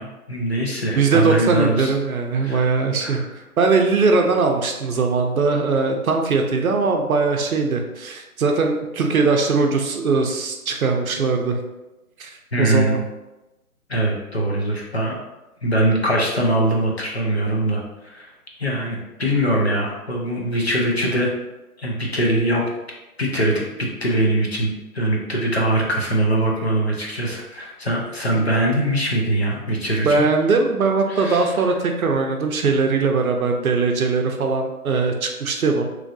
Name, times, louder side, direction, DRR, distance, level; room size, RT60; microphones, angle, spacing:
voice 1, 0.0-1.9 2.4-2.7 3.0-3.2 12.5-13.0 13.9-15.2 15.6-18.3 18.6-21.3 21.8-22.6 23.2-30.2 31.1-31.4, right 1 dB, 45° left, -1 dB, 0.5 m, -22 dB
voice 2, 1.0-3.2 3.6-11.6 12.2-13.0 28.4-28.5 30.0-35.8, right 4 dB, 65° right, 3 dB, 0.6 m, -20 dB
3.0 x 2.4 x 2.6 m, 1.0 s
hypercardioid pair, 175°, 45 cm